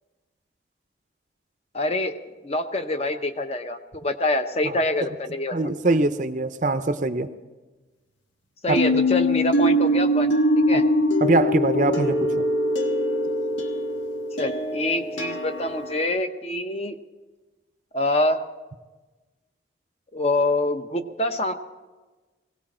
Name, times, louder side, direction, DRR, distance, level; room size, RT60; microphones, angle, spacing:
voice 1, 1.7-2.1 2.4-5.6 8.6-10.4 10.7-10.9 14.4-17.0 17.9-18.4 20.1-21.5, left 2 dB, 35° left, 8 dB, 0.8 m, -25 dB
voice 2, 5.5-7.3 8.7-8.8 10.7-10.8 11.2-12.5, right 2 dB, 40° right, 9 dB, 0.6 m, -23 dB
sound 1, 8.8-16.1, equal, 85° left, 1.5 m, -23 dB
19.0 x 17.5 x 4.3 m, 1.2 s
head